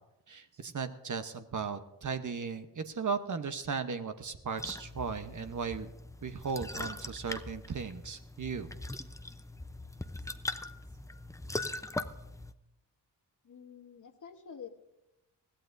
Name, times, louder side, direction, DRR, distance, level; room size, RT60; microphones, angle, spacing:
voice 1, 0.3-5.9 6.2-8.7, right 5 dB, 45° right, 8 dB, 1.0 m, -36 dB
sound 1, 4.6-12.5, left 2 dB, 5° left, 0.6 m, -41 dB
voice 2, 13.4-14.7, left 7 dB, 45° left, 6 dB, 1.2 m, -48 dB
20.5 x 14.5 x 2.6 m, 0.91 s
cardioid pair, 60°, 42 cm